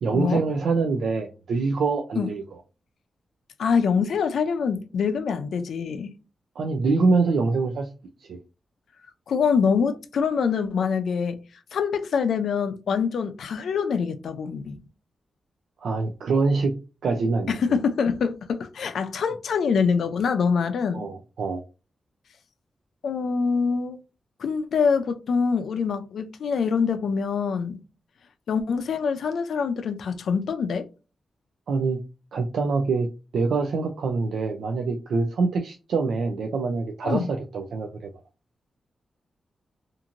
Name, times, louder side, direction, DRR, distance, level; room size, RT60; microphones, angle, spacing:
voice 1, 0.0-2.4 6.6-7.9 8.2-8.4 15.8-16.7 17.0-17.6 20.9-21.6 31.7-32.0 32.3-33.1 33.3-38.1, right 4 dB, 85° right, 0.4 m, -25 dB
voice 2, 3.6-6.1 9.3-11.4 11.7-14.8 17.5-21.1 23.0-24.0 24.4-27.8 28.5-30.9 37.0-37.3, left 6 dB, 75° left, 0.4 m, -25 dB
2.9 x 2.5 x 2.5 m
wide cardioid pair, 155°, 0 cm